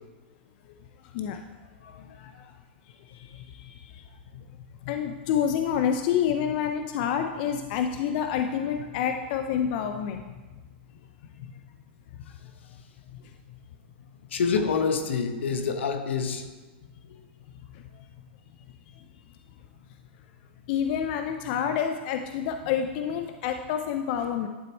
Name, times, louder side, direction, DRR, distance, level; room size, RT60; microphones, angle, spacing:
voice 1, 1.0-1.4 2.0-2.5 2.9-4.4 4.8-10.2 11.4-11.5 12.1-12.2 13.1-13.2 17.7-17.8 20.7-24.5, left 8 dB, 50° left, 6 dB, 0.5 m, -29 dB
voice 2, 14.3-16.4, left 5 dB, 85° left, 7 dB, 0.9 m, -27 dB
11.0 x 4.0 x 4.4 m, 1.2 s
hypercardioid pair, 130°, 6 cm